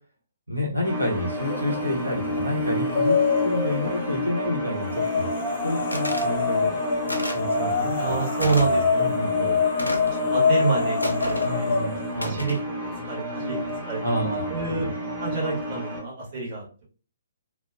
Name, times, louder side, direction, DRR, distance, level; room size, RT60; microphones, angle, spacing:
voice 1, 0.5-3.2 3.4-5.3 5.6-6.8 7.3-9.6 11.4-12.4 14.0-14.9, left 1 dB, 80° right, -2 dB, 0.9 m, -29 dB
sound 1, 0.8-16.0, equal, 15° right, 1.0 m, -31 dB
sound 2, 1.3-2.0 2.3-4.1 4.9-12.1, left 5 dB, 40° left, 0.6 m, -25 dB
sound 3, 5.9-6.3 7.1-7.5 8.4-8.7 9.8-10.2 11.0-11.5 12.2-12.7, equal, 85° left, 0.4 m, -32 dB
voice 2, 8.0-9.1 9.4-9.6 10.2-11.7 12.1-12.6 13.1-13.6 13.9-14.0 14.5-14.9 15.2-16.8, right 4 dB, 40° right, -4 dB, 1.1 m, -28 dB
2.5 x 2.2 x 2.3 m, 0.38 s
figure-of-eight pair, 130°, 0 cm